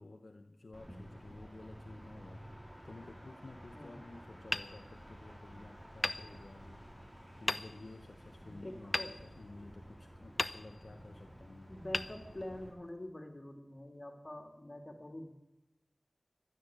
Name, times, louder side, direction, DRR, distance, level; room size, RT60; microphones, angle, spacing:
voice 1, 0.0-6.9 7.4-11.8, left 2 dB, 75° left, 5 dB, 1.0 m, -53 dB
sound 1, 0.7-12.7, equal, 15° right, 4.8 m, -53 dB
Hammer, 4.5-5.5 6.0-6.9 7.5-8.1 8.9-9.9 10.4-11.1 11.9-12.9, left 2 dB, 60° left, 0.7 m, -39 dB
voice 2, 8.4-9.1 11.7-15.3, left 1 dB, 40° left, 4 dB, 3.1 m, -46 dB
14.0 x 12.0 x 8.3 m, 0.93 s
wide cardioid pair, 45°, 0 cm